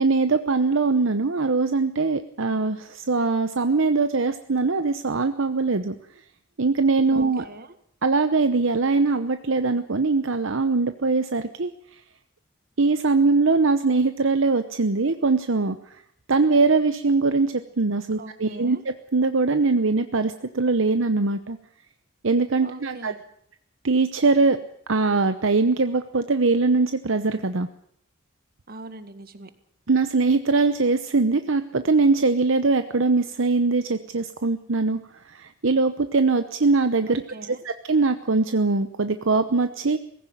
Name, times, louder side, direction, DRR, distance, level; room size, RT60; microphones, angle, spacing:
voice 1, 0.0-6.0 6.6-7.4 8.0-11.7 12.8-15.8 16.3-21.6 22.2-23.1 23.8-24.6 24.9-27.7 29.9-35.0 35.3-37.2 37.6-40.0, right 3 dB, 70° right, 9 dB, 0.9 m, -22 dB
voice 2, 7.1-7.8 18.2-18.8 22.6-23.2 28.7-29.5 37.1-37.6, right 2 dB, 50° right, 10 dB, 1.8 m, -41 dB
19.0 x 16.0 x 9.1 m, 0.67 s
head